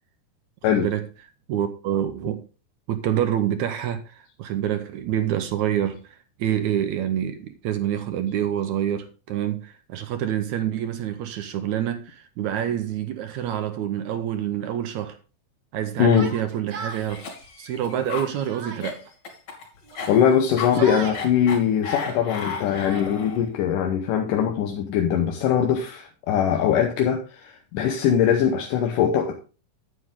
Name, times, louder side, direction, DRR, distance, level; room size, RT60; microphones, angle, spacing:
voice 1, 0.7-1.1 1.5-2.4 2.9-15.2 15.7-17.2 17.6-19.1 20.8-21.0, right 10 dB, 75° right, 2.0 m, -27 dB
voice 2, 16.0-16.3 20.1-29.4, left 8 dB, 80° left, 2.5 m, -21 dB
Yell, 16.1-17.1 17.9-18.9 19.9-21.2 22.1-23.0, right 4 dB, 50° right, 1.4 m, -38 dB
Cough, 16.9-23.5, left 5 dB, 50° left, 3.9 m, -35 dB
9.6 x 9.4 x 3.6 m
omnidirectional pair, 3.7 m